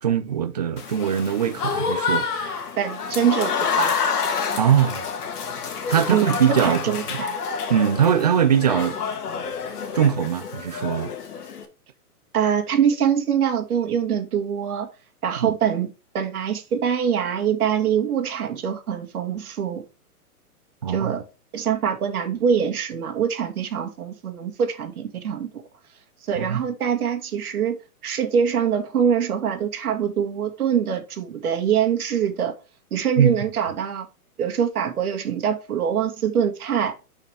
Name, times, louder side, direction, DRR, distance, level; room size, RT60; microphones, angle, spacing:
voice 1, 0.0-2.6 4.6-5.1 5.9-7.2 7.7-9.0 9.9-11.1 15.4-15.5 20.8-21.2 26.4-26.6 33.2-33.4, right 8 dB, 30° right, 0.4 m, -21 dB
Applause / Crowd, 0.8-11.6, left 5 dB, 80° left, 2.0 m, -28 dB
voice 2, 2.8-3.9 6.1-7.4 12.3-14.9 15.2-15.9 16.1-19.8 20.9-21.2 21.5-25.5 26.3-27.8 28.0-32.5 32.9-34.1 34.4-36.9, right 8 dB, 70° right, 2.1 m, -24 dB
6.8 x 5.8 x 3.4 m
hypercardioid pair, 160°, 45 cm